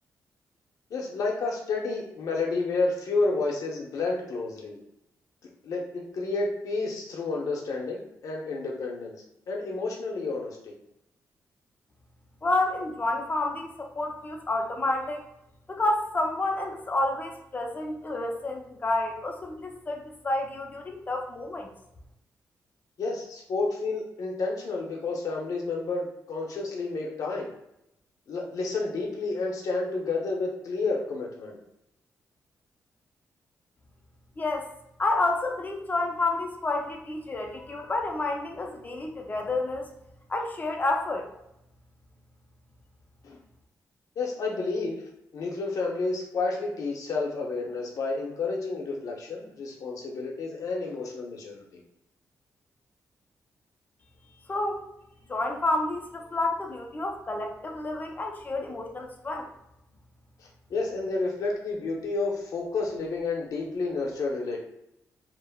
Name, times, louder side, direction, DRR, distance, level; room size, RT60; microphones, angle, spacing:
voice 1, 0.9-4.8 5.6-10.7 23.0-27.5 28.3-31.6 43.2-43.4 44.2-45.0 45.3-51.8 60.7-64.6, left 3 dB, 70° left, 0 dB, 0.7 m, -30 dB
voice 2, 12.4-15.2 15.7-21.7 34.4-34.7 35.0-39.9 40.3-41.3 54.5-54.8 55.3-59.5, left 2 dB, 30° left, 2 dB, 0.5 m, -29 dB
3.4 x 2.0 x 2.2 m, 0.83 s
cardioid pair, 85°, 6 cm